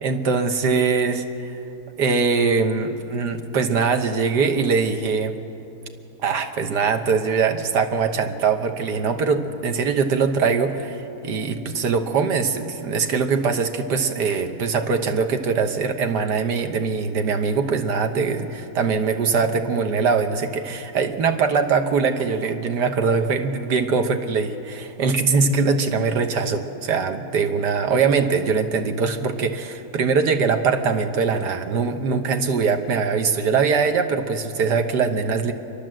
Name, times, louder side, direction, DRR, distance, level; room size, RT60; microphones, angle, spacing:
voice 1, 0.0-1.6 2.0-5.3 6.2-35.5, right 5 dB, 60° right, 6 dB, 1.6 m, -22 dB
29.0 x 12.0 x 7.6 m, 3.0 s
omnidirectional pair, 2.2 m